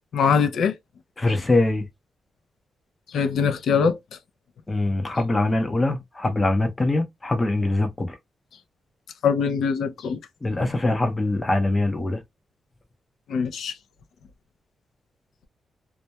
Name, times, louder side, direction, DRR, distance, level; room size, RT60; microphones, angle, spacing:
voice 1, 0.1-0.7 3.1-4.0 9.2-10.2 13.3-13.7, left 6 dB, 85° left, 0.4 m, -22 dB
voice 2, 1.2-1.8 4.7-8.2 10.4-12.2, left 2 dB, 20° left, 0.6 m, -23 dB
2.2 x 2.1 x 2.8 m
wide cardioid pair, 155°, 0 cm